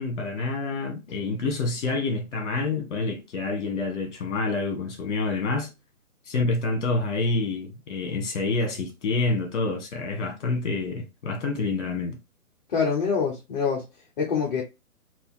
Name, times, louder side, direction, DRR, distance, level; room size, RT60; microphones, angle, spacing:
voice 1, 0.0-5.7 6.3-12.2, left 3 dB, 50° left, 1.4 m, -27 dB
voice 2, 12.7-13.9 14.2-14.6, left 5 dB, 30° left, 0.9 m, -25 dB
3.3 x 2.6 x 3.6 m
hypercardioid pair, 160°, 44 cm